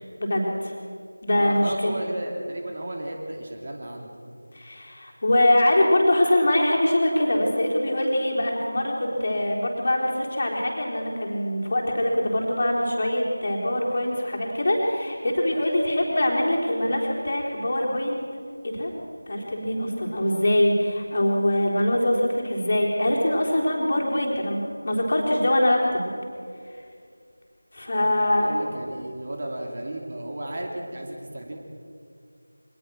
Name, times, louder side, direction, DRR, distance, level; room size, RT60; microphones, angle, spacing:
voice 1, 0.2-0.7 1.2-2.0 4.5-18.2 18.6-18.9 19.3-26.1 26.7-26.8 27.7-28.6, left 1 dB, 35° left, -2 dB, 4.0 m, -23 dB
voice 2, 1.3-4.1 28.2-31.6, right 1 dB, 35° right, 1 dB, 2.7 m, -34 dB
24.0 x 19.5 x 6.3 m, 2.4 s
figure-of-eight pair, 170°, 0 cm